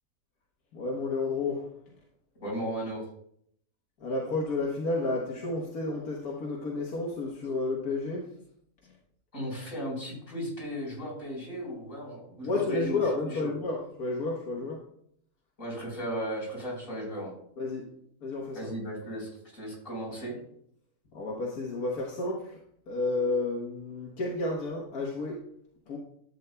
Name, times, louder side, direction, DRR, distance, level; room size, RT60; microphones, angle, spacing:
voice 1, 0.7-1.7 4.0-8.3 12.4-14.8 17.6-17.9 18.2-18.7 21.1-22.6 22.9-25.4 25.9-26.0, left 3 dB, 85° left, -2 dB, 1.7 m, -31 dB
voice 2, 2.4-3.0 9.3-13.5 14.6-14.7 15.6-17.4 18.5-20.4, equal, 60° left, -3 dB, 4.6 m, -36 dB
12.0 x 8.3 x 2.2 m, 0.68 s
omnidirectional pair, 1.5 m